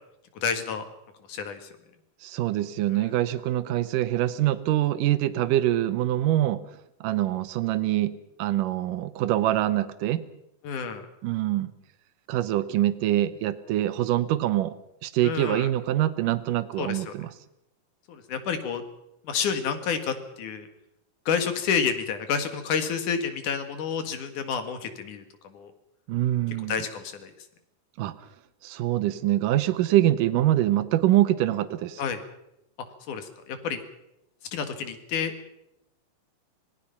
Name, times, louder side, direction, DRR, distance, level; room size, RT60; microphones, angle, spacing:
voice 1, 0.3-0.8 1.3-1.7 2.9-3.1 10.6-11.1 15.2-15.7 16.8-17.1 18.1-18.8 19.2-20.7 21.3-25.7 26.7-27.3 32.0-32.2 33.1-33.8 34.5-35.3, left 6 dB, 65° left, 8 dB, 3.2 m, -29 dB
voice 2, 2.2-6.6 7.0-10.2 11.2-11.7 12.3-14.8 15.0-17.3 26.1-26.9 28.0-28.2 28.6-32.0, right 13 dB, 80° right, 13 dB, 2.6 m, -24 dB
26.0 x 19.0 x 5.8 m, 0.85 s
omnidirectional pair, 3.9 m